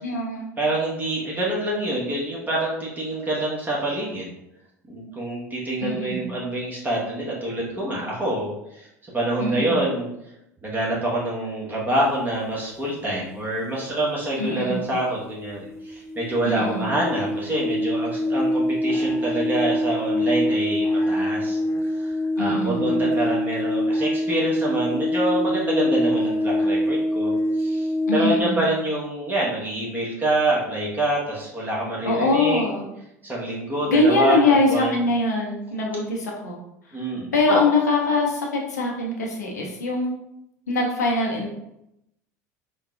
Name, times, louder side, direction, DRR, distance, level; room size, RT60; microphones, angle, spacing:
voice 1, 0.0-0.5 5.8-6.4 9.4-9.9 14.4-14.9 16.4-16.9 22.4-23.0 28.1-28.6 32.0-32.8 33.9-36.6 36.9-37.0 37.3-40.1 40.7-41.5, left 2 dB, 80° left, -2 dB, 0.9 m, -23 dB
voice 2, 0.6-4.3 4.9-8.9 9.1-10.1 10.6-21.6 21.9-32.6 33.2-35.0 36.9-37.6, right 1 dB, 20° right, -4 dB, 1.2 m, -26 dB
sound 1, 14.8-14.9 15.2-28.4, left 1 dB, 25° left, 0.9 m, -24 dB
3.9 x 2.3 x 3.6 m, 0.84 s
figure-of-eight pair, 70°, 9 cm